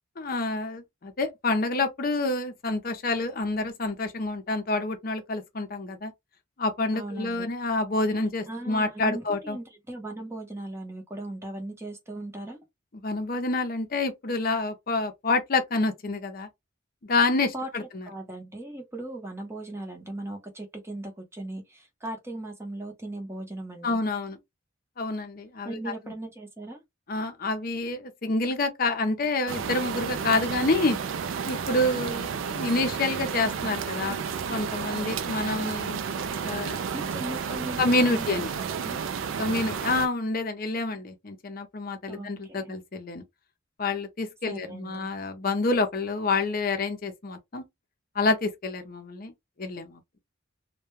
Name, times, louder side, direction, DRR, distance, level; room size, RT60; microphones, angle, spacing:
voice 1, 0.2-6.1 6.6-9.6 13.0-16.5 17.1-17.8 23.8-24.4 25.0-25.8 27.1-31.0 31.4-34.2 34.5-36.0 36.4-36.8 37.8-38.5 39.4-43.2 43.8-47.6 48.2-49.3 49.6-50.0, left 3 dB, 45° left, 0.6 m, -28 dB
voice 2, 6.9-7.5 8.5-12.6 17.5-24.0 25.6-26.8 36.9-39.0 42.1-42.7 44.5-45.1, right 1 dB, 10° right, 0.7 m, -38 dB
sound 1, 29.5-40.1, right 6 dB, 75° right, 0.3 m, -32 dB
2.2 x 2.2 x 3.0 m
head